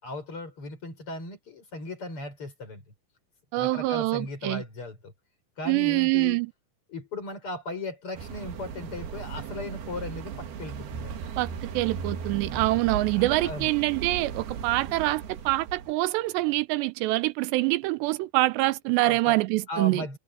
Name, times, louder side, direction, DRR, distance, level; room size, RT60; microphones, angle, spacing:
voice 1, 0.0-2.8 3.6-5.1 5.6-6.4 6.9-11.2 12.6-13.7 19.0-19.4 19.7-20.2, left 2 dB, 30° left, 7.3 m, -37 dB
voice 2, 3.5-4.6 5.7-6.5 11.4-20.1, right 20 dB, 85° right, 3.0 m, -25 dB
sound 1, 8.1-15.9, right 6 dB, 65° right, 3.9 m, -37 dB
omnidirectional pair, 4.9 m